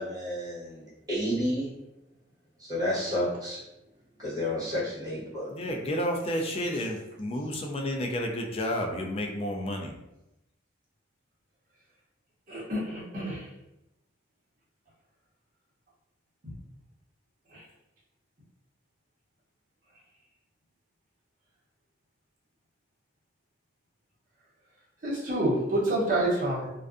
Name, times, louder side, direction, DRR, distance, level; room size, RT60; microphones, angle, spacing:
voice 1, 0.0-1.7 2.6-3.6 4.2-5.5, left 1 dB, 20° right, -10 dB, 1.1 m, -31 dB
voice 2, 5.5-9.9, equal, 30° left, 2 dB, 0.3 m, -31 dB
voice 3, 12.5-13.4 16.4-16.6 17.5-17.6 25.0-26.7, right 1 dB, 45° right, -6 dB, 0.8 m, -28 dB
2.5 x 2.2 x 2.4 m, 0.93 s
head